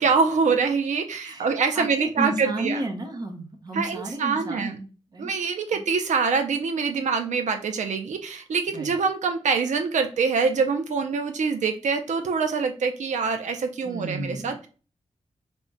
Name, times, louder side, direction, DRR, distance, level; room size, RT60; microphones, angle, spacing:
voice 1, 0.0-2.9 3.7-4.8 5.2-14.7, right 5 dB, 85° right, 6 dB, 0.4 m, -25 dB
voice 2, 1.7-5.3 5.7-5.8 8.7-8.9 13.8-14.6, right 1 dB, 35° right, 5 dB, 0.6 m, -33 dB
3.5 x 2.1 x 3.9 m, 0.36 s
wide cardioid pair, 175°, 12 cm